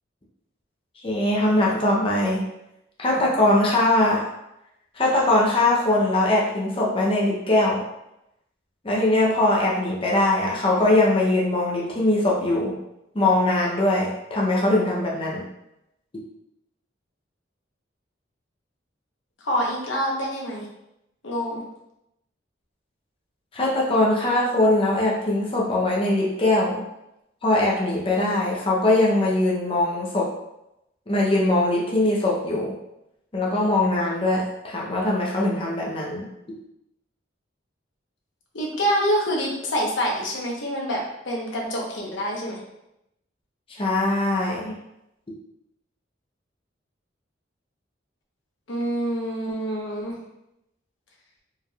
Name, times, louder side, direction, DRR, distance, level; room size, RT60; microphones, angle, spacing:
voice 1, 1.0-2.5 3.0-4.3 4.9-7.8 8.8-12.8 13.1-15.4 23.5-26.8 27.4-30.3 31.1-32.7 33.3-36.2 43.8-44.7, left 1 dB, 30° left, -4 dB, 0.7 m, -21 dB
voice 2, 19.4-20.7 21.2-21.6 38.5-41.0 41.2-42.6 48.7-50.1, equal, 70° left, -2 dB, 1.0 m, -26 dB
4.5 x 3.3 x 2.3 m, 0.86 s
head